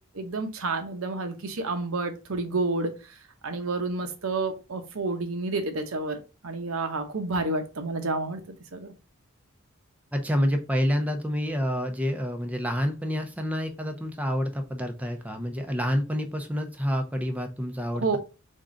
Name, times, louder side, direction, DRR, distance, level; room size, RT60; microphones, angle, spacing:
voice 1, 0.1-2.9 3.4-8.4 8.7-8.9 17.9-18.2, right 3 dB, 70° right, 0.9 m, -29 dB
voice 2, 10.1-18.2, equal, 5° right, 0.6 m, -28 dB
3.7 x 3.7 x 3.8 m
head